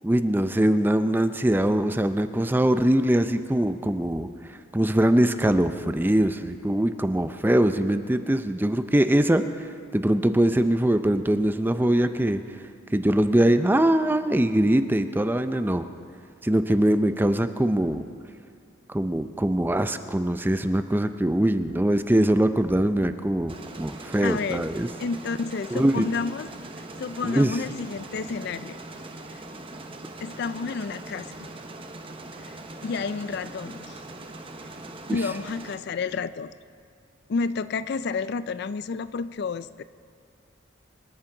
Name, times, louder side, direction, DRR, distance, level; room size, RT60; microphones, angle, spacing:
voice 1, 0.0-4.3 4.7-9.7 9.9-12.4 12.9-15.8 16.4-18.0 18.9-24.9 25.7-26.0 27.2-27.5, right 1 dB, 10° right, 10 dB, 0.4 m, -22 dB
sound 1, 23.5-35.8, right 2 dB, 25° right, 0.9 m, -41 dB
voice 2, 24.2-24.7 25.0-26.5 27.0-28.8 30.2-31.5 32.4-34.0 35.1-36.5 37.3-39.8, left 4 dB, 55° left, 15 dB, 0.4 m, -30 dB
25.0 x 13.0 x 3.9 m, 2.4 s
head